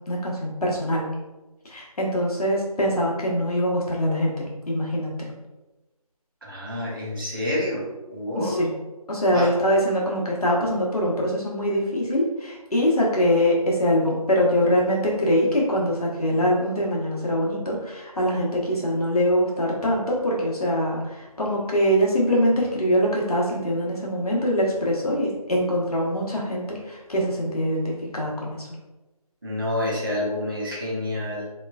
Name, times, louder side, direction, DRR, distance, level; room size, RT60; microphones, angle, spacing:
voice 1, 0.1-1.0 1.6-5.3 8.3-8.7 9.1-28.7, equal, 70° left, -3 dB, 1.0 m, -23 dB
voice 2, 6.5-7.8 8.1-8.6 9.3-9.5 29.4-31.5, left 1 dB, 35° right, -6 dB, 0.7 m, -28 dB
3.0 x 2.3 x 2.3 m, 1.1 s
figure-of-eight pair, 170°, 20 cm